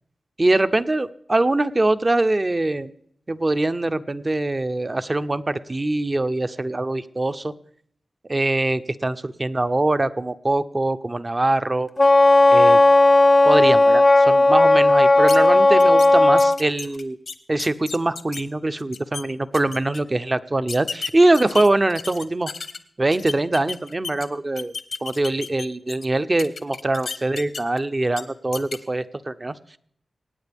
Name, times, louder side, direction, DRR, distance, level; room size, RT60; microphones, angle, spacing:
voice 1, 0.4-2.9 3.3-7.5 8.3-11.9 12.5-12.8 13.5-17.2 17.5-22.5 23.0-24.7 25.0-29.5, right 2 dB, 30° right, 12 dB, 0.6 m, -23 dB
Wind instrument woodwind instrument, 12.0-16.6, left 2 dB, 30° left, 0.6 m, -14 dB
sound 1, 15.3-15.4 15.8-16.1 16.4-18.4 18.8-19.2 19.5-20.0 20.7-22.8 23.1-24.3 24.6-26.0 26.4-27.8 28.1-28.2 28.5-28.8, left 5 dB, 75° left, 1.0 m, -33 dB
25.0 x 9.2 x 3.5 m, 0.64 s
wide cardioid pair, 80°, 0 cm